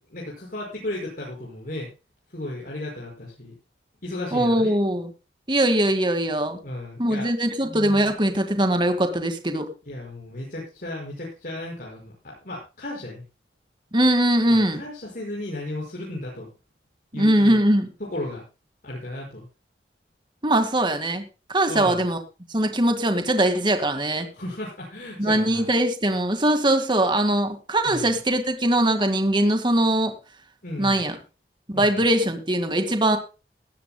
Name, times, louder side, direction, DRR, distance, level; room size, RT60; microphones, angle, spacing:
voice 1, 0.0-1.9 2.3-3.5 4.0-4.7 6.6-7.3 7.6-8.1 9.9-13.2 14.5-16.5 17.1-17.6 18.0-18.4 18.8-19.5 21.7-22.0 24.3-25.7 27.8-28.1 30.6-31.0 31.7-32.1, left 1 dB, 50° left, -3 dB, 5.6 m, -34 dB
voice 2, 4.3-5.1 5.5-6.6 7.0-9.7 13.9-14.8 17.1-17.9 20.4-21.2 21.5-22.2 22.5-24.3 25.2-30.1 30.8-31.2 31.7-33.2, right 1 dB, 25° right, 7 dB, 1.9 m, -21 dB
17.5 x 13.5 x 2.2 m, 0.31 s
head